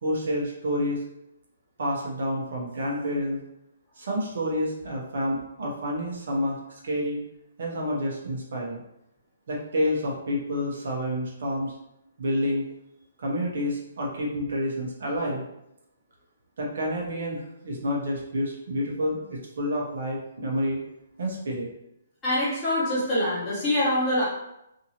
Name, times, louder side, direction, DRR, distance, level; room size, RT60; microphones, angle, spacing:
voice 1, 0.0-1.0 1.8-3.4 4.0-6.6 6.8-7.2 7.6-8.8 9.5-11.7 12.2-12.6 13.2-15.4 16.6-20.9 21.2-21.7, equal, 60° right, -3 dB, 0.8 m, -29 dB
voice 2, 22.2-24.2, left 1 dB, 10° left, -11 dB, 1.1 m, -24 dB
2.7 x 2.6 x 2.8 m, 0.84 s
hypercardioid pair, 175°, 0 cm